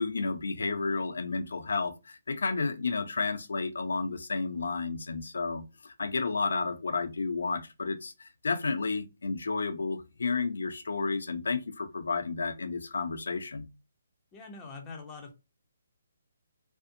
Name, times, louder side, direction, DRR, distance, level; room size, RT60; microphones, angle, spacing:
voice 1, 0.0-13.7, left 4 dB, 75° left, 0.5 m, -31 dB
voice 2, 14.3-15.3, left 4 dB, 20° left, 0.6 m, -44 dB
2.6 x 2.0 x 2.6 m
hypercardioid pair, 150°, 0 cm